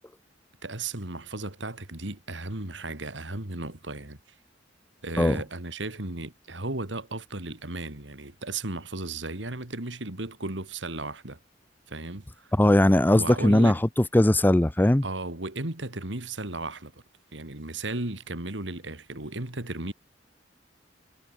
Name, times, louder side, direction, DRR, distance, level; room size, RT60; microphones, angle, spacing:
voice 1, 0.6-4.2 5.0-11.4 11.9-12.5 13.1-13.8 15.0-16.9 17.3-19.9, right 2 dB, 75° right, 2.9 m, -35 dB
voice 2, 12.6-15.0, left 1 dB, 10° left, 0.5 m, -20 dB
head